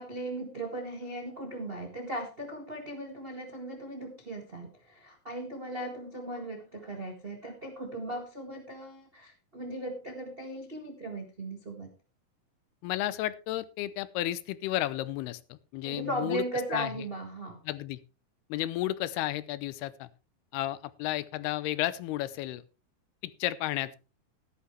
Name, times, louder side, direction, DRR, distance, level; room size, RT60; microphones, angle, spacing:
voice 1, 0.0-11.9 15.8-17.6, right 1 dB, 70° right, 2 dB, 0.5 m, -37 dB
voice 2, 12.8-16.4 16.7-16.9 17.7-18.0 18.5-20.1 20.5-22.6 23.2-24.0, left 15 dB, 90° left, 16 dB, 2.7 m, -32 dB
14.0 x 12.0 x 3.2 m, 0.31 s
omnidirectional pair, 4.5 m